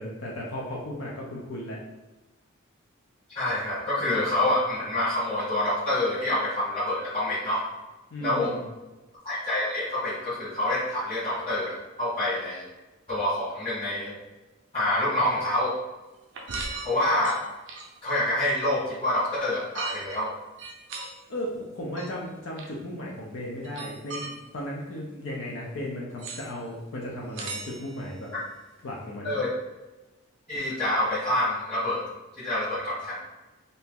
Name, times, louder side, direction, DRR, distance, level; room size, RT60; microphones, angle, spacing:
voice 1, 0.0-1.8 8.1-8.7 21.3-28.3 28.8-29.4, left 1 dB, 70° left, -4 dB, 0.6 m, -35 dB
voice 2, 3.3-7.7 8.2-8.5 9.2-12.7 13.1-14.1 14.7-15.7 16.8-17.4 18.0-20.3 29.2-29.5 30.5-32.1 32.4-33.2, left 1 dB, 30° left, -13 dB, 1.1 m, -27 dB
sound 1, 16.3-18.1 19.7-20.2 20.6-21.1 22.0-22.1 22.6-22.7 23.6-24.3 26.2-26.5 27.3-28.1, right 3 dB, 60° right, 0.5 m, -37 dB
2.8 x 2.6 x 3.6 m, 1.1 s
head